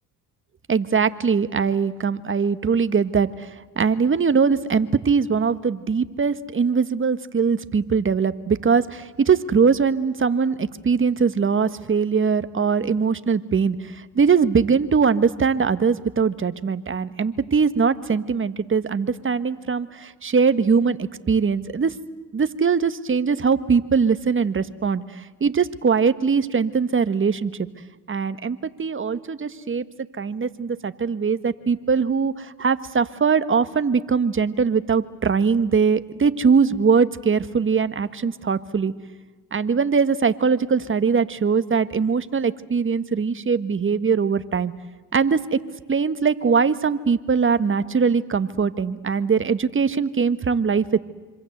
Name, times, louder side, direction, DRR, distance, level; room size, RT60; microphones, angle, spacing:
voice 1, 0.7-3.5 3.7-21.9 22.3-27.5 28.1-29.8 30.2-38.9 39.5-44.7 45.1-45.6 45.9-51.0, right 5 dB, 35° right, 12 dB, 1.5 m, -21 dB
26.5 x 26.0 x 8.0 m, 1.3 s
supercardioid pair, 70°, 37 cm